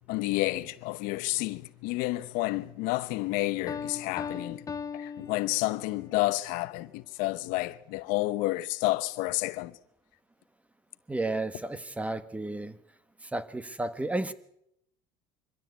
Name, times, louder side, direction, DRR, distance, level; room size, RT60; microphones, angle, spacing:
voice 1, 0.0-4.6 4.9-9.7, left 19 dB, 70° left, 0.9 m, -30 dB
Piano, 3.7-6.1, left 6 dB, 25° left, 0.9 m, -38 dB
voice 2, 11.1-12.8 13.3-14.3, right 2 dB, 10° right, 1.3 m, -32 dB
23.5 x 15.0 x 8.2 m
supercardioid pair, 105°, 15 cm